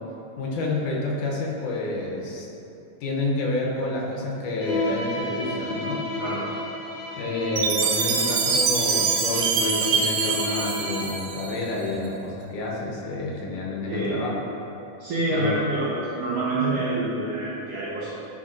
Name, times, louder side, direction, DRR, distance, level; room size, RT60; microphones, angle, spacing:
voice 1, 0.4-2.5 3.0-6.0 7.2-14.4 15.3-15.5, left 2 dB, 80° left, -2 dB, 2.3 m, -29 dB
Bowed string instrument, 4.6-11.3, left 2 dB, 55° left, 1.8 m, -32 dB
Chime, 7.6-11.8, right 5 dB, 85° right, 1.5 m, -24 dB
voice 2, 13.9-14.2 15.0-18.1, right 2 dB, 70° right, -8 dB, 1.6 m, -27 dB
9.9 x 4.0 x 2.5 m, 2.8 s
omnidirectional pair, 3.6 m